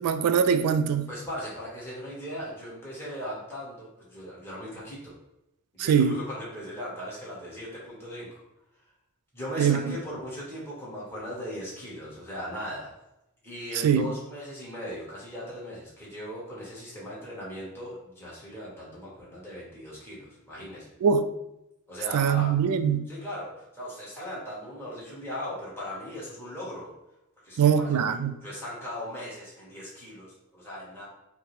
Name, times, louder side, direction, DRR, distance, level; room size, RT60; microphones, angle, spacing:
voice 1, 0.0-1.1 5.8-6.2 9.6-10.0 13.8-14.1 21.0-21.2 22.1-23.1 27.6-28.4, right 7 dB, 90° right, 0.3 m, -22 dB
voice 2, 1.1-5.1 5.7-8.3 9.3-12.9 13.4-20.9 21.9-22.5 23.1-26.9 27.4-31.0, equal, 10° left, 1.2 m, -38 dB
5.7 x 2.0 x 3.1 m
head